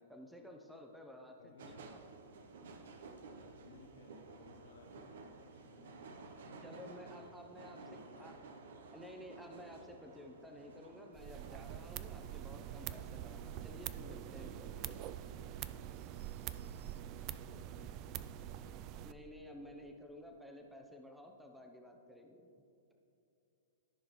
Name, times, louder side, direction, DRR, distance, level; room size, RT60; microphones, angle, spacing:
voice 1, 0.0-1.8 6.6-8.3 8.9-15.2 19.0-22.5, left 1 dB, 5° right, 2 dB, 0.8 m, -53 dB
voice 2, 1.4-1.9 3.6-8.7 17.0-18.9 19.6-19.7, left 5 dB, 80° left, 0 dB, 0.8 m, -62 dB
sound 1, 1.6-17.0, right 3 dB, 70° right, 0.8 m, -55 dB
sound 2, 11.2-19.1, right 11 dB, 40° right, 0.3 m, -45 dB
14.0 x 5.1 x 3.1 m, 2.8 s
hypercardioid pair, 120°, 0 cm